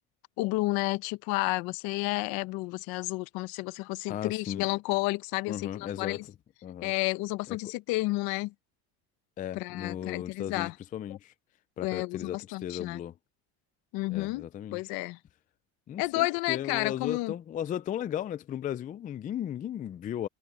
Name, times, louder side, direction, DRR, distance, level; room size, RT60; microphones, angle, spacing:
voice 1, 0.4-6.2 6.8-8.5 9.5-10.7 11.8-13.0 13.9-15.2 16.0-17.3, left 22 dB, 70° left, 0.9 m, -31 dB
voice 2, 4.1-4.7 5.5-6.2 6.6-6.9 7.5-7.7 9.4-11.3 11.8-13.2 14.1-14.8 15.9-20.3, left 10 dB, 25° left, 0.3 m, -36 dB
cardioid pair, 125°, 37 cm